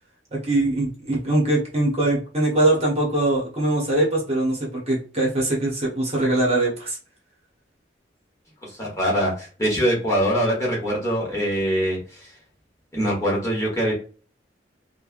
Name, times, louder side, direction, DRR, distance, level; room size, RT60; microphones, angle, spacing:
voice 1, 0.3-7.0, right 2 dB, 35° right, -3 dB, 1.0 m, -22 dB
voice 2, 8.6-12.3 12.9-13.9, equal, 20° left, -5 dB, 1.2 m, -23 dB
3.2 x 2.2 x 2.4 m, 0.38 s
head